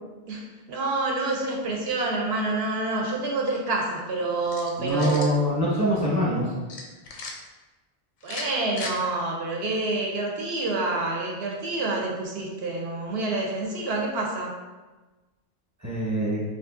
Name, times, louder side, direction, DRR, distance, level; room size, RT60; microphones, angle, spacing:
voice 1, 0.7-5.3 8.2-14.5, right 2 dB, 75° right, -1 dB, 0.8 m, -28 dB
sound 1, 4.4-5.4 6.7-7.3 8.2-8.9, left 3 dB, 55° left, 0.5 m, -37 dB
voice 2, 4.8-6.5 15.8-16.4, equal, 20° right, -7 dB, 0.9 m, -24 dB
4.0 x 2.5 x 2.4 m, 1.2 s
omnidirectional pair, 1.1 m